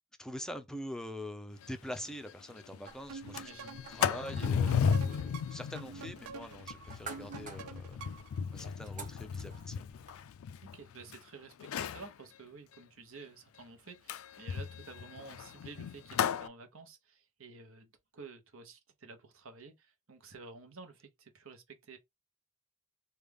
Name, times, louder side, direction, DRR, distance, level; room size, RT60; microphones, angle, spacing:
voice 1, 0.2-3.5 3.9-8.2 8.5-9.8, equal, 5° left, 0.5 m, -44 dB
Sliding door, 1.6-1.7 2.1-2.2 2.5-2.8 3.2-11.2 11.6-12.1 14.1-16.5, left 7 dB, 65° left, 0.3 m, -35 dB
sound 1, 2.9-10.2, right 5 dB, 40° right, 1.0 m, -53 dB
sound 2, 3.1-8.4, right 5 dB, 90° right, 0.4 m, -47 dB
voice 2, 3.4-3.8 4.2-4.3 10.7-22.0, right 4 dB, 65° right, 0.9 m, -51 dB
3.3 x 2.3 x 3.4 m
head